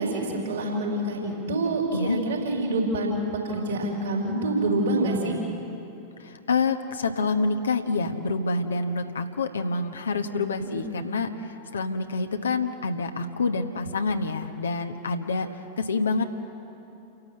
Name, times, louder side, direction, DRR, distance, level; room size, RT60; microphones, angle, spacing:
voice 1, 0.0-3.2 3.4-5.4 10.7-10.8, right 2 dB, 65° right, -1 dB, 4.7 m, -26 dB
voice 2, 6.2-15.5 15.8-16.2, left 3 dB, 70° left, 6 dB, 1.1 m, -27 dB
29.0 x 12.0 x 7.8 m, 2.9 s
figure-of-eight pair, 90°, 0 cm